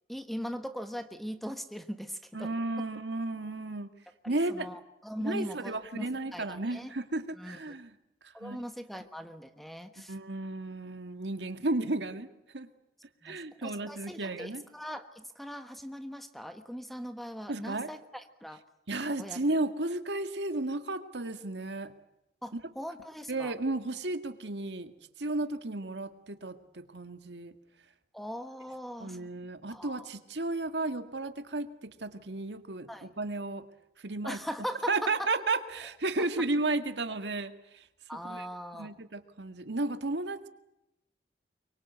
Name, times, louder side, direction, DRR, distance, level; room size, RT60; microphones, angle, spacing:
voice 1, 0.1-2.5 4.2-6.9 7.4-7.6 8.3-10.1 13.2-13.4 13.6-18.6 19.2-19.4 22.4-23.5 28.1-29.3 29.7-30.1 32.9-33.1 34.2-35.3 38.1-38.9, equal, ahead, 8 dB, 1.3 m, -40 dB
voice 2, 2.3-3.9 4.3-4.7 5.2-7.9 8.4-8.6 10.1-12.3 12.5-12.7 13.2-14.6 17.5-17.9 18.9-21.9 22.5-22.6 23.3-24.9 25.2-27.5 29.0-33.7 34.0-34.4 34.9-37.8 38.2-38.5 38.7-40.5, right 2 dB, 85° right, 8 dB, 1.9 m, -33 dB
24.0 x 23.5 x 8.1 m, 0.89 s
head